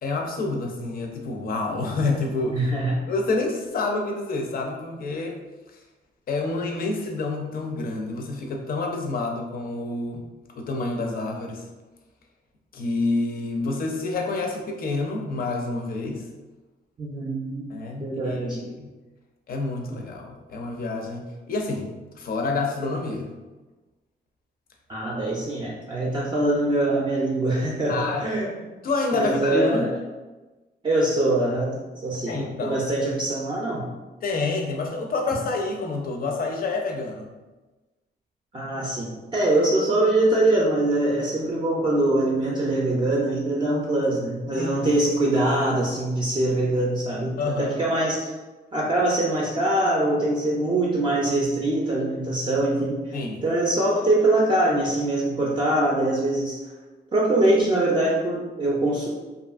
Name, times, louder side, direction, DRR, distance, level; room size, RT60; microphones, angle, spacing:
voice 1, 0.0-2.7 3.1-5.4 6.3-10.2 10.6-11.6 12.7-16.2 17.7-18.9 19.5-21.9 22.2-23.3 27.9-28.3 28.8-29.9 32.3-32.8 34.2-37.3 44.5-44.7 47.4-47.8 53.1-53.4, left 3 dB, 55° left, 2 dB, 0.5 m, -28 dB
voice 2, 2.5-3.0 17.0-17.7 18.0-18.6 24.9-28.5 29.1-29.9 30.8-33.9 38.5-48.3 48.7-53.0 53.4-56.6 57.1-59.1, right 1 dB, 30° right, -4 dB, 0.4 m, -23 dB
2.7 x 2.4 x 2.3 m, 1.2 s
cardioid pair, 135°, 18 cm